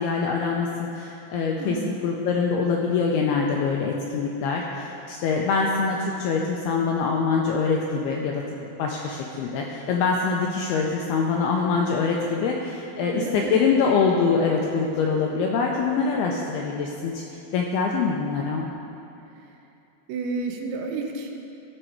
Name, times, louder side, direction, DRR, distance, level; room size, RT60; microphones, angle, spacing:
voice 1, 0.0-18.7, left 5 dB, 90° left, 0 dB, 2.2 m, -24 dB
voice 2, 1.5-2.0 13.0-13.7 20.1-21.3, right 4 dB, 90° right, 3 dB, 3.1 m, -30 dB
14.0 x 6.1 x 4.6 m, 2.8 s
omnidirectional pair, 5.2 m